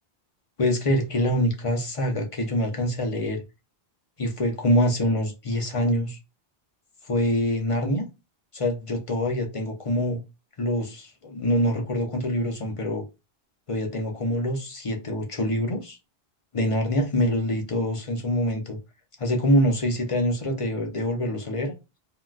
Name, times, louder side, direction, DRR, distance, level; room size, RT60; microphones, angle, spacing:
voice 1, 0.6-3.4 4.2-6.2 7.1-8.0 8.5-10.2 10.6-13.0 13.7-16.0 16.5-18.8 19.2-21.7, equal, 40° left, 0.6 m, -25 dB
3.7 x 2.2 x 2.3 m
omnidirectional pair, 1.0 m